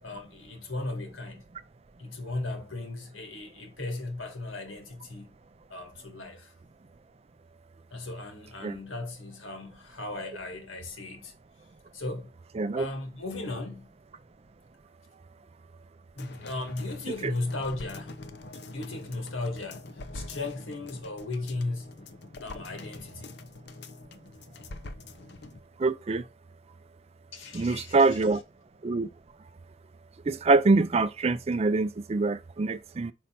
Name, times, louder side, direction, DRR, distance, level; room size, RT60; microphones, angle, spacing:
voice 1, 0.0-1.4 2.0-5.3 5.7-6.5 7.9-11.3 11.9-12.3 12.7-13.9 16.2-18.2 18.7-21.9 22.4-23.4 27.3-28.2, left 2 dB, 85° left, 1.9 m, -36 dB
voice 2, 12.6-12.9 17.2-17.3 25.8-26.2 27.5-28.4 28.8-29.1 30.3-33.1, right 3 dB, 30° right, 0.4 m, -24 dB
sound 1, 16.2-25.6 26.0-26.1, left 2 dB, 60° left, 0.7 m, -44 dB
5.6 x 4.2 x 5.8 m
head